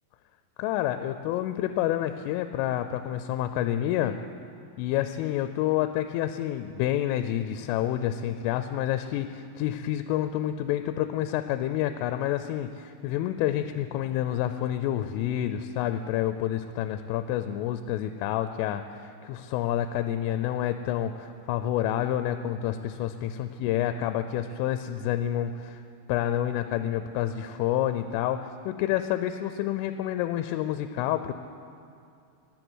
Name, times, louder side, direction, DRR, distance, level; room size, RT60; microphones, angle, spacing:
voice 1, 0.6-4.2 4.8-25.8 26.1-31.3, left 12 dB, 90° left, 10 dB, 3.1 m, -28 dB
18.5 x 11.0 x 6.2 m, 2.6 s
omnidirectional pair, 5.7 m